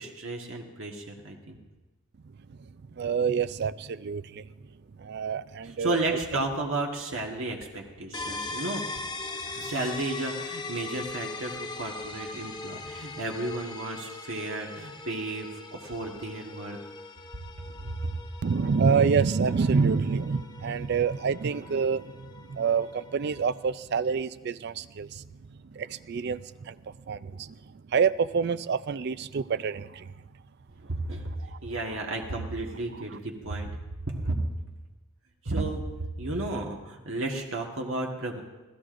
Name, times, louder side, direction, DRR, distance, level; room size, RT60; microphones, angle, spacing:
voice 1, 0.0-1.6 5.6-9.0 9.5-16.8 17.6-18.1 30.8-31.3 31.6-33.7 34.1-34.4 35.4-38.4, right 2 dB, 70° right, 1 dB, 1.4 m, -33 dB
voice 2, 3.0-4.5 5.0-6.4 18.4-25.2 25.7-27.5 27.9-30.1 31.5-31.6, right 5 dB, 50° right, 15 dB, 0.4 m, -27 dB
sound 1, 8.1-23.7, left 3 dB, 20° left, 0.8 m, -40 dB
26.0 x 16.5 x 2.5 m, 1.2 s
head